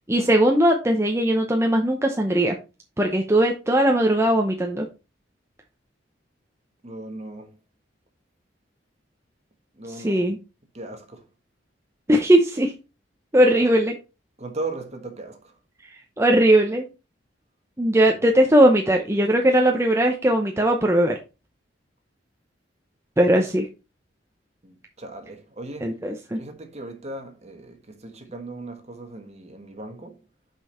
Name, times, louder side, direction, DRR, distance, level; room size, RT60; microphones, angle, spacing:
voice 1, 0.1-2.5 3.0-4.9 10.0-10.4 12.1-12.7 13.3-14.0 16.2-16.9 17.8-21.2 23.2-23.7 25.8-26.4, right 1 dB, 15° right, 0.8 m, -19 dB
voice 2, 6.8-7.5 9.8-10.3 10.7-11.2 13.5-13.7 14.4-15.5 18.0-18.2 24.6-25.9 26.4-30.2, right 2 dB, 35° right, 1.5 m, -37 dB
5.9 x 5.4 x 4.3 m
head